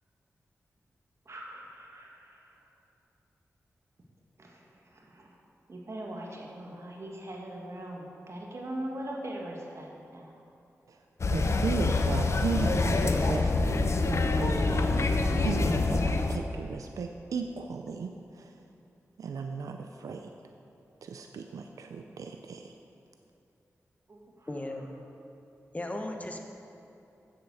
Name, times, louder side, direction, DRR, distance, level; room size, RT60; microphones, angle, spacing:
voice 1, 1.3-2.5 4.4-4.6 4.9-5.3 5.7-10.3 24.1-24.5, right 1 dB, 55° right, -1 dB, 1.9 m, -41 dB
sound 1, 11.2-16.4, left 3 dB, 55° left, 0.7 m, -26 dB
voice 2, 11.3-18.5 19.2-20.3 21.0-22.7, right 5 dB, 85° right, 5 dB, 0.4 m, -36 dB
voice 3, 24.5-24.9 25.7-26.5, left 1 dB, 25° left, 3 dB, 1.2 m, -36 dB
7.7 x 7.4 x 6.9 m, 2.8 s
cardioid pair, 50°, 6 cm